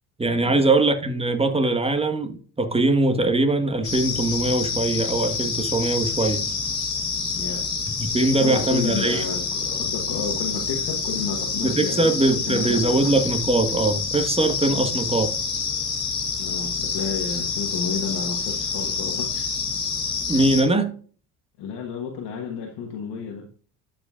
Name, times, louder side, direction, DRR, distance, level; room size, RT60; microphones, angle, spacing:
voice 1, 0.2-6.4 8.0-9.2 11.6-15.3 20.3-20.9, right 2 dB, 15° right, 1.3 m, -21 dB
sound 1, 3.8-20.6, left 5 dB, 45° left, 2.6 m, -27 dB
voice 2, 7.3-7.6 8.4-12.2 12.5-13.1 16.4-19.5 21.6-23.5, left 6 dB, 65° left, 1.5 m, -31 dB
12.0 x 5.1 x 2.4 m
supercardioid pair, 75°, 43 cm